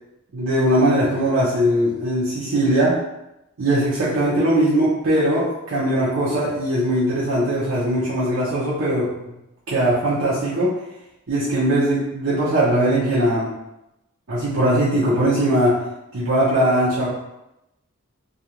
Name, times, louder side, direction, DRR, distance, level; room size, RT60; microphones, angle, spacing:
voice 1, 0.3-3.0 3.6-9.1 9.7-10.7 11.3-13.5 14.3-15.8 16.1-17.1, right 1 dB, 60° right, -8 dB, 0.6 m, -20 dB
2.4 x 2.2 x 2.8 m, 0.90 s
head